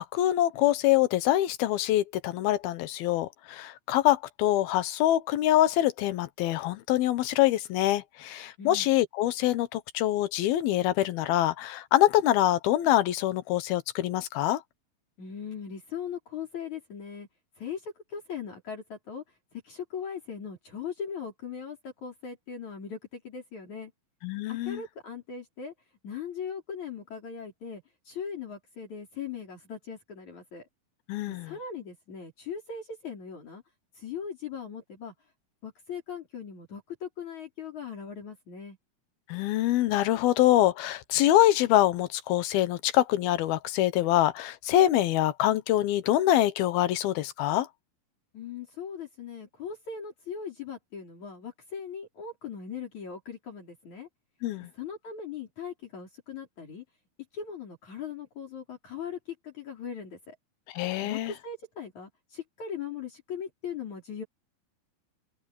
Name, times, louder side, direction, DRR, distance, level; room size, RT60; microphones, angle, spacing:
voice 1, 0.0-14.6 24.2-24.8 31.1-31.5 39.3-47.7 54.4-54.7 60.7-61.3, left 14 dB, 85° left, 2.9 m, -25 dB
voice 2, 15.2-17.3 17.6-19.2 19.6-23.9 24.5-25.7 26.0-30.7 31.4-33.6 34.0-35.1 35.6-38.8 48.3-54.1 54.7-56.8 57.3-59.2 59.4-60.4 61.0-64.2, left 6 dB, 50° left, 5.7 m, -39 dB
open air
omnidirectional pair, 4.3 m